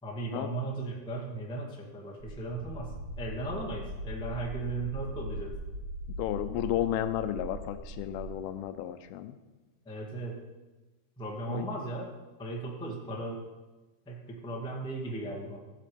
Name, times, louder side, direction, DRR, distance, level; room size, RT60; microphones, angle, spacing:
voice 1, 0.0-2.9 3.2-5.5 9.8-10.4 11.2-12.0 12.4-13.4 14.0-15.6, right 2 dB, 5° left, -2 dB, 1.0 m, -36 dB
sound 1, 2.2-8.3, right 1 dB, 50° right, 1.3 m, -40 dB
voice 2, 6.2-9.3 11.5-11.7, left 12 dB, 85° left, 9 dB, 2.6 m, -32 dB
16.0 x 7.6 x 5.2 m, 1.2 s
omnidirectional pair, 4.4 m